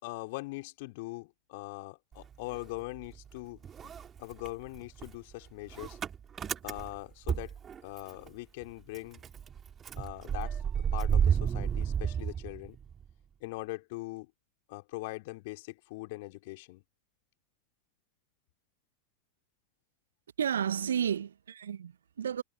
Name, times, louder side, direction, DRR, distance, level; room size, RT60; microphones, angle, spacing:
voice 1, 0.0-3.9 4.2-6.0 6.6-7.5 7.8-9.2 10.0-10.6 10.9-12.8 13.4-14.3 14.7-16.8, left 23 dB, 50° left, 3.9 m, -41 dB
Motor vehicle (road) / Engine starting, 2.1-3.3 3.6-8.3 8.6-8.7 8.9-13.1, right 8 dB, 25° right, 2.5 m, -32 dB
voice 2, 20.4-22.4, right 8 dB, 65° right, 1.7 m, -32 dB
figure-of-eight pair, 90°, 0 cm